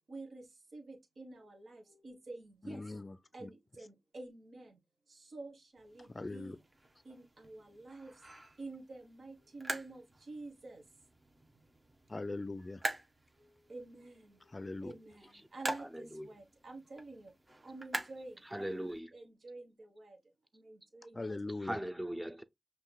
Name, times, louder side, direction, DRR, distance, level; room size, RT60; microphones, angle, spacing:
voice 1, 0.1-2.8 3.3-4.8 5.1-6.6 7.0-8.1 8.6-10.8 13.4-14.6 14.8-17.3 17.6-20.2 20.5-21.3, right 2 dB, 75° right, 1.2 m, -49 dB
voice 2, 2.6-3.2 3.4-3.5 6.1-6.6 12.1-12.8 14.5-14.9 21.1-21.8, left 2 dB, 40° left, 0.4 m, -40 dB
sound 1, 5.8-19.0, right 1 dB, 35° right, 1.0 m, -46 dB
voice 3, 15.8-16.3 18.4-19.1 21.5-22.4, right 1 dB, 15° right, 0.6 m, -40 dB
5.6 x 2.9 x 2.2 m
cardioid pair, 45°, 0 cm